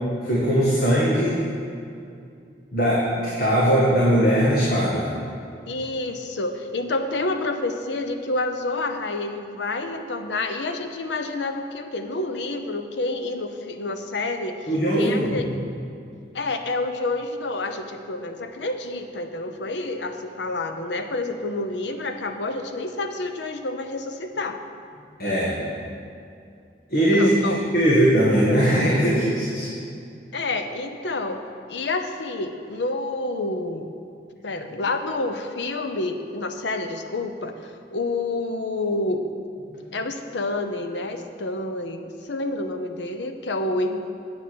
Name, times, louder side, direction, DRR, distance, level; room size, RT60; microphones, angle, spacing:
voice 1, 0.2-1.5 2.7-5.1 14.7-15.5 25.2-25.6 26.9-29.7 39.8-39.9, equal, 60° left, -6 dB, 1.6 m, -20 dB
voice 2, 5.7-14.7 15.0-15.5 16.3-24.6 27.1-27.6 30.3-31.4 31.7-33.9 34.4-39.3 39.9-44.0, left 2 dB, 85° left, 7 dB, 0.7 m, -28 dB
8.5 x 7.5 x 6.2 m, 2.4 s
head